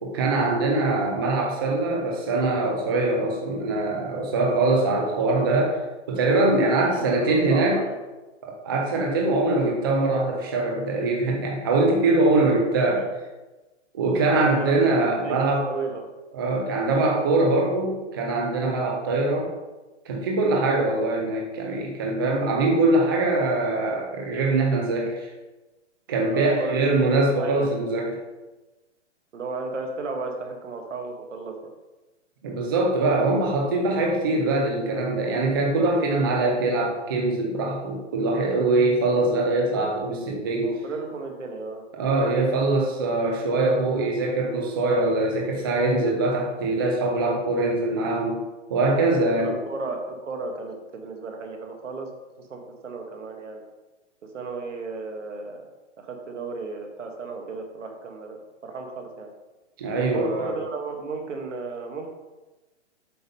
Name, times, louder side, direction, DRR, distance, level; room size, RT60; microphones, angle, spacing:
voice 1, 0.0-5.8 6.1-7.8 8.4-13.1 13.9-15.7 16.3-19.5 20.1-25.3 26.1-28.1 32.4-40.8 42.0-48.4 48.7-49.5 59.8-60.6, right 2 dB, 20° right, -1 dB, 0.5 m, -23 dB
voice 2, 6.8-8.0 13.0-13.1 14.2-14.8 15.2-16.1 26.3-27.8 29.3-31.7 40.6-41.8 49.4-52.1 52.4-53.6 54.3-55.7 56.0-59.3 60.0-62.1, right 3 dB, 75° right, 3 dB, 1.6 m, -34 dB
7.7 x 3.7 x 5.4 m, 1.1 s
hypercardioid pair, 160°, 37 cm